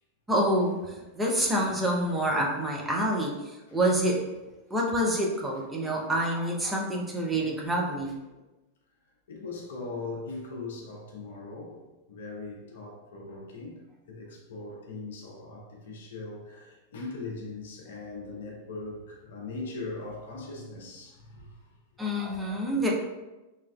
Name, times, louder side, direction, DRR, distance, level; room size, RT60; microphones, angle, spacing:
voice 1, 0.3-4.2 4.7-8.1 22.0-22.9, right 1 dB, 10° right, -2 dB, 0.5 m, -27 dB
voice 2, 9.3-21.8, left 3 dB, 60° left, -1 dB, 0.5 m, -40 dB
3.0 x 2.2 x 2.3 m, 1.1 s
figure-of-eight pair, 90°, 0 cm